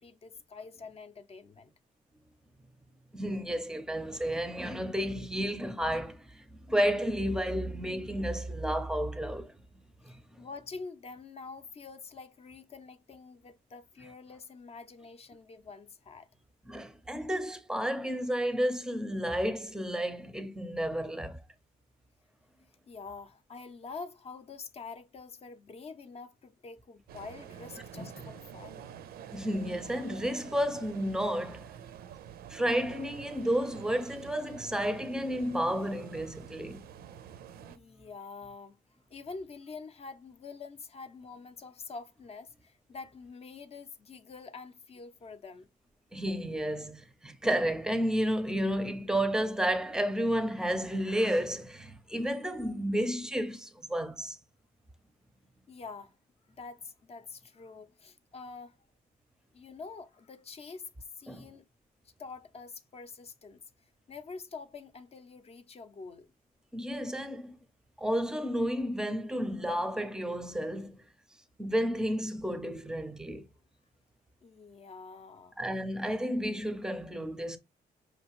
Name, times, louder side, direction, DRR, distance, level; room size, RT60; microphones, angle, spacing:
voice 1, 0.0-1.7 10.0-16.3 22.9-28.9 37.7-38.8 39.1-45.7 55.7-56.1 56.5-58.8 59.5-61.7 62.0-63.6 64.1-66.3 74.4-75.6, left 4 dB, 40° left, 0.6 m, -46 dB
voice 2, 3.1-9.5 10.1-10.2 16.7-21.4 27.9-28.1 29.3-31.7 32.5-36.8 46.1-54.4 61.3-61.5 66.7-67.6 68.0-71.0 71.6-73.5 75.6-77.6, equal, 5° right, 0.6 m, -31 dB
sound 1, 27.1-37.8, right 9 dB, 75° right, 0.5 m, -47 dB
5.1 x 2.8 x 3.0 m
cardioid pair, 105°, 16 cm